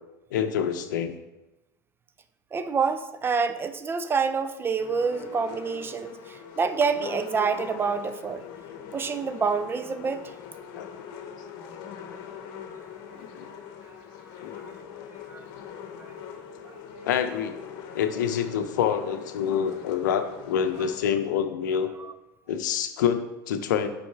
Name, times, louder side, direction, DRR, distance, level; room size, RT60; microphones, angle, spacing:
voice 1, 0.3-1.1 10.8-10.9 13.3-13.5 14.4-14.5 17.0-17.6 17.9-21.9 22.5-23.9, left 8 dB, 80° left, 8 dB, 0.6 m, -26 dB
voice 2, 2.5-8.4 8.9-10.2, right 5 dB, 25° right, 11 dB, 0.4 m, -27 dB
sound 1, 4.8-21.0, left 7 dB, 60° left, 1.0 m, -42 dB
5.3 x 4.2 x 4.6 m, 0.99 s
hypercardioid pair, 95°, 10 cm